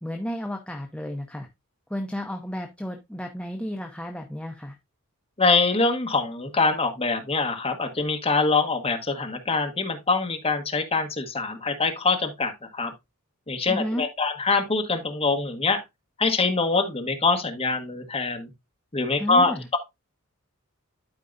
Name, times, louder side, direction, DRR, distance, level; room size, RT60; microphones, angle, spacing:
voice 1, 0.0-1.5 1.9-4.8 13.7-14.0 19.2-19.7, equal, 5° left, 0.7 m, -32 dB
voice 2, 5.4-12.9 13.5-15.8 16.2-18.5 18.9-19.8, left 3 dB, 25° left, 1.3 m, -24 dB
12.5 x 4.6 x 2.5 m
head